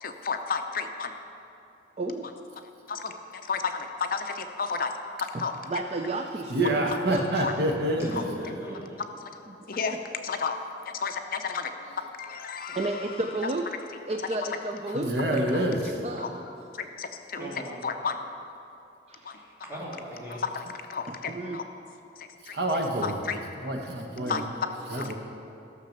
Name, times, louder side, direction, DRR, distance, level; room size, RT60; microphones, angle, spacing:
voice 1, 0.0-1.1 2.9-4.9 5.2-5.6 7.4-7.5 9.2-9.3 9.7-10.0 10.2-10.6 10.9-11.7 12.2-13.2 14.9-15.0 15.5-15.6 16.2-17.4 17.8-18.2 19.2-19.4 20.3-20.6 20.9-21.6 22.2-22.3 23.0-23.4 24.3-24.4 25.0-25.1, left 5 dB, 50° left, 6 dB, 0.6 m, -32 dB
voice 2, 2.0-2.3 5.3-6.8 7.1-7.5 7.8-7.9 9.5-9.6 12.7-13.7 14.1-16.3 17.4-17.6 19.1-19.2 21.1-21.6 24.2-24.5, right 2 dB, 35° right, 4 dB, 0.5 m, -33 dB
voice 3, 6.5-8.1 14.9-16.0 22.6-23.2 23.6-24.4 24.9-25.1, right 1 dB, 60° right, 2 dB, 1.2 m, -27 dB
voice 4, 8.0-9.0 17.4-17.8 19.2-20.4, equal, 15° right, -6 dB, 2.6 m, -39 dB
13.5 x 6.7 x 6.6 m, 2.8 s
head